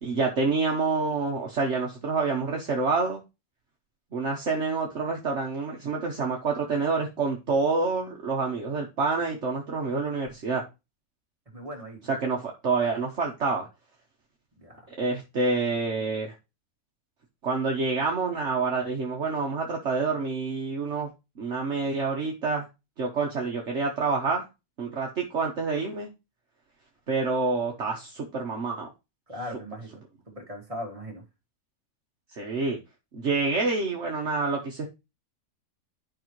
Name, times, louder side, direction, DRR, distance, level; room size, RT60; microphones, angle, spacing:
voice 1, 0.0-3.2 4.1-10.6 12.1-13.7 15.0-16.3 17.4-21.1 21.4-22.7 23.0-24.5 24.8-26.1 27.1-28.9 32.3-32.8 33.1-34.9, right 4 dB, 55° right, 0 dB, 1.4 m, -27 dB
voice 2, 11.5-12.0 14.6-14.9 29.3-31.2, equal, 25° right, 0 dB, 2.5 m, -39 dB
11.5 x 5.1 x 3.1 m, 0.26 s
omnidirectional pair, 1.4 m